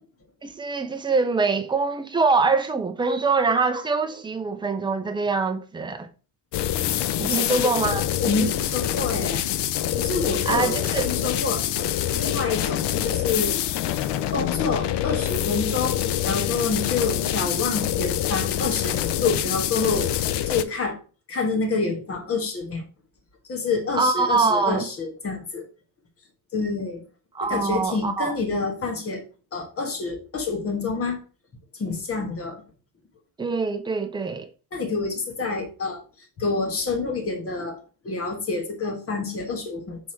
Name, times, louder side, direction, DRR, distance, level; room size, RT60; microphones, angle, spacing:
voice 1, 0.4-6.1 7.2-8.1 10.5-11.1 23.9-24.9 27.3-28.4 33.4-34.5, right 4 dB, 10° right, 0.4 m, -24 dB
sound 1, 6.5-20.6, left 12 dB, 60° left, 0.5 m, -26 dB
voice 2, 7.3-7.7 8.2-9.4 10.0-13.6 14.3-20.1 20.5-21.0 21.3-22.8 23.5-25.6 26.5-27.0 27.4-29.2 29.5-31.2 31.7-32.6 34.7-36.0 36.4-37.8 38.0-40.0, left 4 dB, 30° left, 1.3 m, -27 dB
6.2 x 3.5 x 4.3 m
cardioid pair, 170°, 49 cm